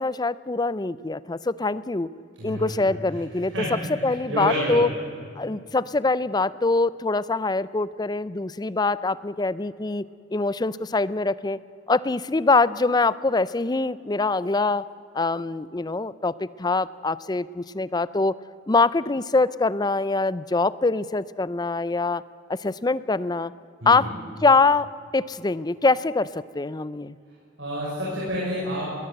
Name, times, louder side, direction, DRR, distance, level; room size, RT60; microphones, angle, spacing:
voice 1, 0.0-2.1 2.4-3.5 4.0-4.9 5.4-11.6 11.9-14.9 15.1-18.3 18.7-22.2 22.5-23.5 23.9-24.1 24.4-24.9 25.1-27.2, left 3 dB, 20° left, 18 dB, 0.5 m, -24 dB
voice 2, 2.4-2.7 3.5-4.8 23.8-24.1 27.6-28.9, equal, 75° right, -7 dB, 6.8 m, -29 dB
21.0 x 18.5 x 8.0 m, 2.3 s
head